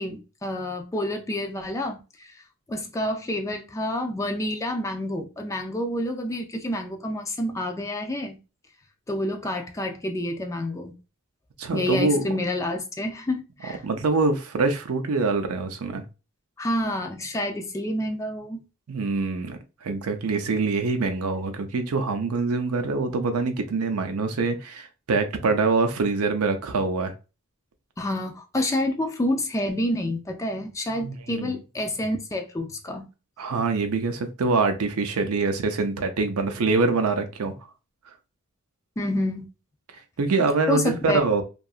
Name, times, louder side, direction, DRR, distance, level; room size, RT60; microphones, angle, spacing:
voice 1, 0.0-2.3 2.7-8.4 9.1-10.9 11.7-13.8 16.6-18.6 28.0-33.1 39.0-39.5 40.7-41.2, left 1 dB, 15° left, 0.3 m, -28 dB
voice 2, 11.6-12.3 13.8-16.0 18.9-27.1 31.0-31.5 33.4-37.5 40.2-41.4, right 3 dB, 75° right, 0.5 m, -24 dB
2.7 x 2.3 x 2.4 m
head